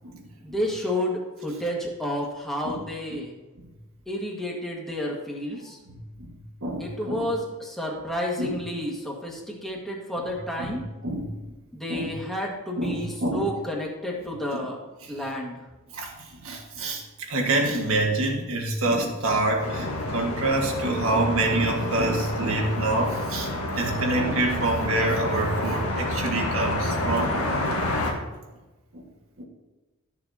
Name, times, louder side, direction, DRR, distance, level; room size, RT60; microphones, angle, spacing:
voice 1, 0.4-3.3 4.1-5.8 6.8-10.8 11.7-14.8 15.1-15.5, equal, ahead, -3 dB, 1.6 m, -30 dB
voice 2, 5.9-6.3 6.6-7.3 8.4-8.6 10.6-10.7 11.0-11.4 11.9-12.1 12.8-13.6 14.5-14.6 15.0-15.2 15.9-16.1 16.4-27.4 28.0-28.2 28.9-29.0 29.4-29.5, right 2 dB, 65° right, 1 dB, 1.7 m, -27 dB
sound 1, 19.6-28.1, left 1 dB, 90° left, 1.5 m, -29 dB
12.5 x 7.0 x 2.8 m, 1.1 s
head